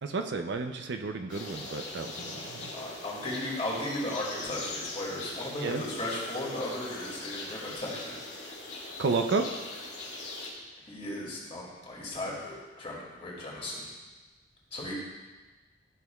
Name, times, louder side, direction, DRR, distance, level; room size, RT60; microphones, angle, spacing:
voice 1, 0.0-2.7 5.6-5.8 9.0-9.5, right 4 dB, 65° right, 6 dB, 0.5 m, -31 dB
sound 1, 1.3-10.5, left 2 dB, 80° left, 2.1 m, -41 dB
voice 2, 2.7-8.2 10.8-13.9 14.7-14.9, left 1 dB, 35° left, -5 dB, 2.3 m, -36 dB
12.5 x 6.3 x 2.3 m, 1.2 s
head